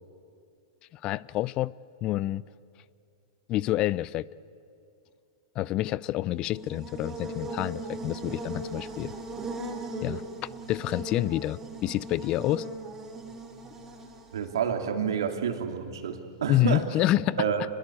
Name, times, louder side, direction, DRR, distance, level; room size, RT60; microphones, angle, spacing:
voice 1, 1.0-1.7 2.0-2.4 3.5-4.3 5.6-9.1 10.0-10.2 10.7-12.7 16.5-17.4, left 15 dB, 40° left, 0.5 m, -28 dB
Buzz, 6.4-14.5, right 2 dB, 15° right, 3.9 m, -39 dB
voice 2, 14.3-16.9 17.4-17.6, right 7 dB, 80° right, 2.9 m, -29 dB
25.5 x 21.5 x 8.5 m
hypercardioid pair, 120°, 2 cm